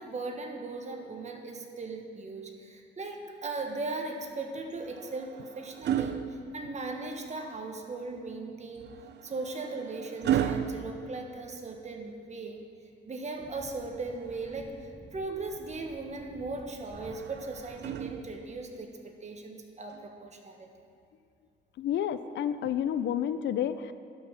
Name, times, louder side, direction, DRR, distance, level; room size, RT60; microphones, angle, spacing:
voice 1, 0.0-6.2 6.5-8.9 9.2-12.6 13.1-14.7 15.1-20.7, right 3 dB, 35° right, 3 dB, 1.3 m, -38 dB
sound 1, 4.7-7.2 8.8-11.9 13.7-14.9 16.9-18.7 19.9-20.1, right 9 dB, 60° right, 0.5 m, -35 dB
sound 2, 13.4-18.4, left 1 dB, 10° right, 1.8 m, -53 dB
voice 2, 21.8-23.9, left 9 dB, 65° left, 12 dB, 0.4 m, -30 dB
12.0 x 5.5 x 5.7 m, 2.3 s
cardioid pair, 90°, 20 cm